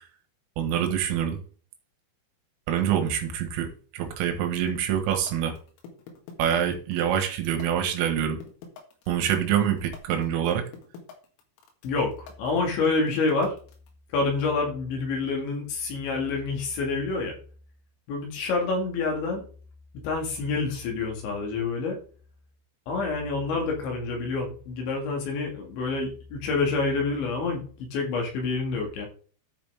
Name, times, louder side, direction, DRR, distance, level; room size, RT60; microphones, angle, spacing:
voice 1, 0.6-1.4 2.7-5.6 6.4-8.4 9.1-10.7, right 9 dB, 85° right, 5 dB, 4.1 m, -26 dB
sound 1, 4.7-13.9, left 5 dB, 90° left, 4.5 m, -45 dB
voice 2, 11.8-13.5 14.1-17.4 18.1-19.4 20.0-22.0 22.9-27.7 27.9-29.1, left 3 dB, 65° left, 1 dB, 4.5 m, -27 dB
13.5 x 6.1 x 3.6 m, 0.41 s
omnidirectional pair, 5.8 m